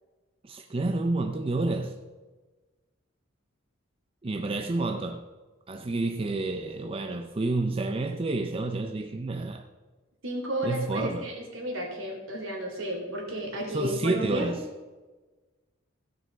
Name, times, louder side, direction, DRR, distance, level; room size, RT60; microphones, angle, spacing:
voice 1, 0.4-2.0 4.2-5.3 5.7-9.6 10.6-11.3 13.7-14.6, right 2 dB, 25° right, 0.5 m, -29 dB
voice 2, 10.2-14.5, equal, 75° right, 3.0 m, -32 dB
16.0 x 5.5 x 5.3 m
head